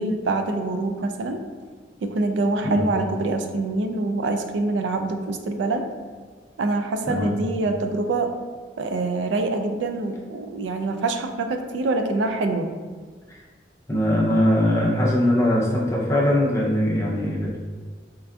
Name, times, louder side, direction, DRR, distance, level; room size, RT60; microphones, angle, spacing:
voice 1, 0.0-1.4 2.0-5.8 6.6-8.3 8.8-12.7, right 2 dB, 80° right, 6 dB, 0.3 m, -25 dB
voice 2, 13.9-17.6, left 1 dB, 15° left, -4 dB, 0.5 m, -21 dB
4.4 x 2.5 x 2.3 m, 1.5 s
head